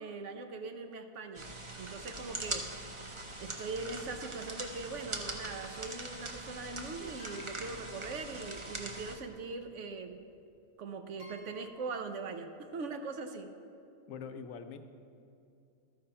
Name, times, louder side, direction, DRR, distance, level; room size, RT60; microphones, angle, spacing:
voice 1, 0.0-1.5 1.8-3.0 3.4-10.2 10.8-13.5, right 4 dB, 70° right, 7 dB, 0.9 m, -41 dB
sound 1, 1.3-9.2, right 2 dB, 30° right, 0.6 m, -42 dB
sound 2, 7.2-8.7 10.1-10.2 11.2-12.0, left 2 dB, 90° right, 2.4 m, -56 dB
voice 2, 14.1-14.8, left 6 dB, 80° left, 8 dB, 1.0 m, -43 dB
13.0 x 4.7 x 5.7 m, 2.5 s
omnidirectional pair, 1.4 m